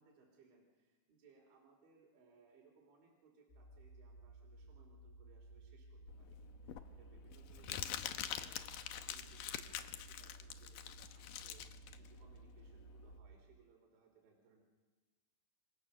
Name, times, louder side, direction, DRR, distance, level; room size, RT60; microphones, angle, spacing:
voice 1, 0.0-14.6, right 4 dB, 75° right, -1 dB, 5.5 m, -67 dB
sound 1, 3.5-13.4, right 2 dB, 35° left, 1.2 m, -57 dB
Crumpling crinkling, 6.1-13.2, left 11 dB, 80° left, 1.9 m, -45 dB
28.0 x 24.0 x 6.8 m, 1.3 s
omnidirectional pair, 5.3 m